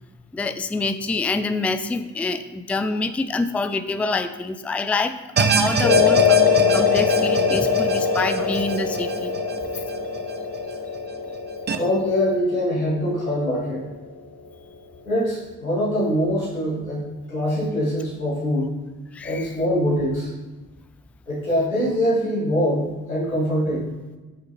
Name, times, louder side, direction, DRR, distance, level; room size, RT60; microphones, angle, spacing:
voice 1, 0.3-9.4 19.1-19.6, left 3 dB, 5° left, 10 dB, 0.4 m, -26 dB
sound 1, 5.4-10.6 10.9-11.0 11.7-11.8, right 5 dB, 25° right, 0.7 m, -26 dB
sound 2, 5.8-14.2, left 6 dB, 45° left, 1.0 m, -22 dB
voice 2, 11.8-13.8 15.1-18.7 19.2-20.3 21.3-23.9, equal, 90° left, -7 dB, 1.9 m, -23 dB
9.0 x 6.4 x 2.8 m, 1.2 s
figure-of-eight pair, 45°, 40 cm